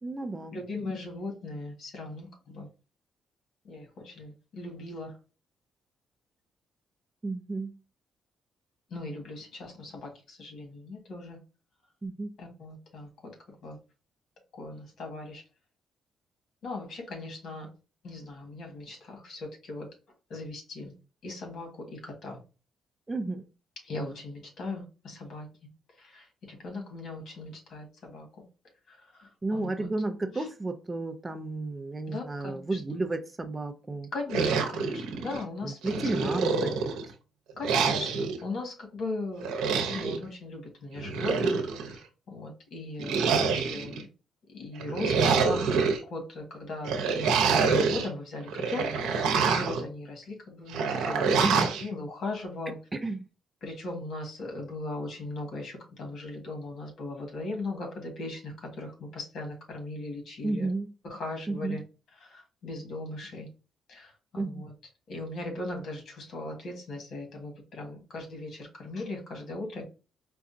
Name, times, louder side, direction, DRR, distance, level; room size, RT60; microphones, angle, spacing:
voice 1, 0.0-0.6 7.2-7.7 12.0-12.3 23.1-23.5 29.4-34.1 35.6-37.2 51.4-51.7 52.7-53.3 60.4-60.9 61.5-61.8 64.4-64.7, right 2 dB, 20° right, 0.5 m, -32 dB
voice 2, 0.5-2.7 3.6-5.2 8.9-11.4 12.4-13.3 13.6-13.8 14.6-15.4 16.6-17.7 18.0-19.9 20.3-20.9 21.2-22.4 23.8-25.5 26.0-28.3 28.9-29.9 30.3-30.4 32.1-32.8 34.1-36.3 37.6-39.5 39.9-44.1 44.5-45.7 46.0-49.1 49.5-51.5 51.8-52.8 53.6-60.7 61.1-61.8 62.2-63.5 63.9-64.7 65.1-69.8, left 2 dB, 65° left, 1.6 m, -38 dB
sound 1, 34.3-35.4 35.8-37.1 37.6-38.4 39.4-40.2 41.0-41.9 43.0-44.0 44.8-46.0 46.8-48.1 48.5-49.8 50.7-51.8, right 5 dB, 90° right, 0.8 m, -26 dB
4.8 x 2.3 x 2.6 m
cardioid pair, 90°, 0 cm